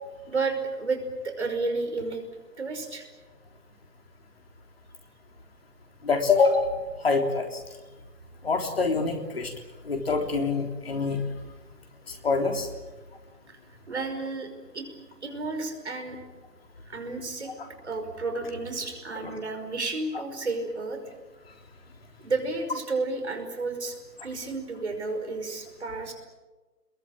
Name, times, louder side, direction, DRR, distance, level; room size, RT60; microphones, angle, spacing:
voice 1, 0.3-2.2 2.6-3.0 13.5-13.6 13.9-14.9 15.2-16.2 16.9-17.5 17.8-21.0 22.2-24.0 24.2-26.1, right 3 dB, 45° right, 5 dB, 5.4 m, -31 dB
voice 2, 6.0-6.7 7.0-7.5 8.4-9.5 9.9-11.2 12.2-12.7, left 4 dB, 35° left, 3 dB, 3.6 m, -25 dB
26.5 x 22.5 x 8.8 m, 1.2 s
figure-of-eight pair, 170°, 48 cm